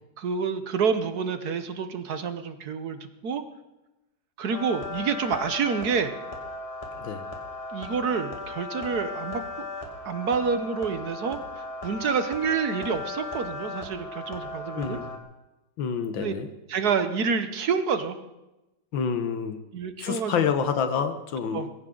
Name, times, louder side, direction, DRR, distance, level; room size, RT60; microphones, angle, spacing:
voice 1, 0.2-3.4 4.4-6.1 7.7-9.4 10.0-15.0 16.2-16.3 16.7-18.2 19.7-20.5 21.5-21.7, right 6 dB, 60° right, 10 dB, 1.3 m, -28 dB
sound 1, 4.5-15.2, left 3 dB, 15° left, 2.0 m, -37 dB
voice 2, 14.8-15.2 15.8-16.5 18.9-19.6 20.0-21.7, left 6 dB, 80° left, 9 dB, 1.9 m, -28 dB
20.5 x 16.0 x 3.9 m, 0.99 s
omnidirectional pair, 2.1 m